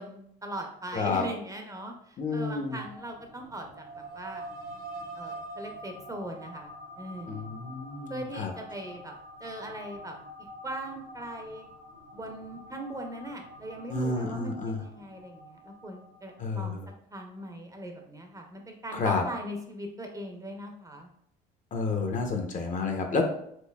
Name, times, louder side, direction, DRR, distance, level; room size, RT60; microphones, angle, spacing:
voice 1, 0.0-4.5 5.1-6.7 7.0-7.5 8.1-9.1 9.4-10.2 10.6-11.7 12.1-16.8 17.1-21.1, right 1 dB, 15° right, 3 dB, 0.6 m, -40 dB
voice 2, 0.9-1.2 2.2-2.8 7.3-8.5 13.9-14.8 16.4-16.9 18.9-19.2 21.7-23.2, left 4 dB, 40° left, 4 dB, 0.7 m, -30 dB
sound 1, 2.7-16.6, right 1 dB, 70° right, 1.1 m, -46 dB
4.5 x 2.7 x 2.2 m, 0.71 s
supercardioid pair, 90°, 20 cm